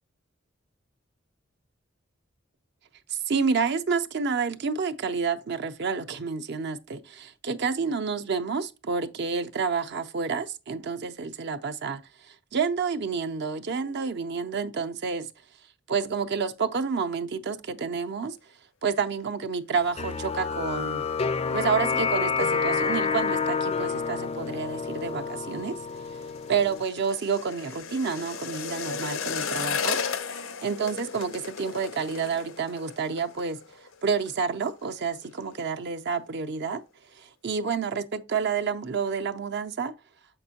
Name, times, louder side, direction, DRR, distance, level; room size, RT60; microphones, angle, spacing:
voice 1, 3.1-15.3 15.9-21.0 21.5-25.8 26.5-30.0 30.6-36.8 37.1-39.9, right 5 dB, 55° right, 0.5 m, -29 dB
sound 1, 20.0-26.8, left 5 dB, 30° left, 0.3 m, -28 dB
sound 2, 25.3-34.4 34.6-35.0 35.2-35.8 36.1-36.2, left 6 dB, 85° left, 0.6 m, -35 dB
6.8 x 5.3 x 2.8 m
head